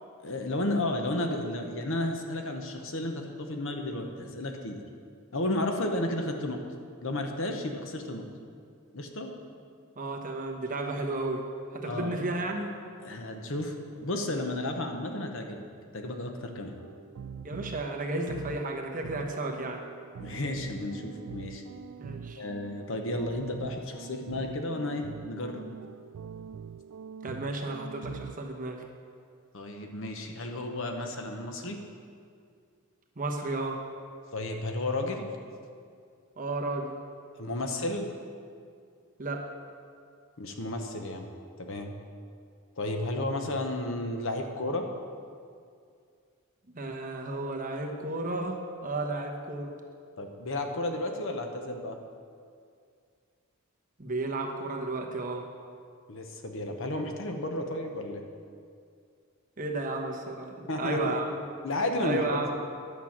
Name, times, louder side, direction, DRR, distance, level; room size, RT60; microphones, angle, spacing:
voice 1, 0.2-4.8 5.3-6.6 7.0-8.2 8.9-9.3 11.8-12.2 13.0-15.6 15.9-16.7 20.2-21.6 22.4-25.6 29.5-31.8 34.3-35.3 37.4-38.1 40.4-41.2 41.6-41.9 42.8-44.9 50.2-52.0 56.1-58.2 60.7-61.1 61.6-62.4, left 1 dB, 60° left, 4 dB, 1.0 m, -32 dB
voice 2, 10.0-11.4 11.7-12.7 17.4-19.8 22.0-22.4 27.2-28.8 33.2-33.8 36.4-37.0 39.2-39.5 46.7-49.7 54.0-55.5 59.6-61.3 62.0-62.5, right 2 dB, 40° right, 2 dB, 1.0 m, -33 dB
sound 1, 16.4-28.9, right 7 dB, 85° right, 0.3 m, -44 dB
10.5 x 6.1 x 7.3 m, 2.3 s
head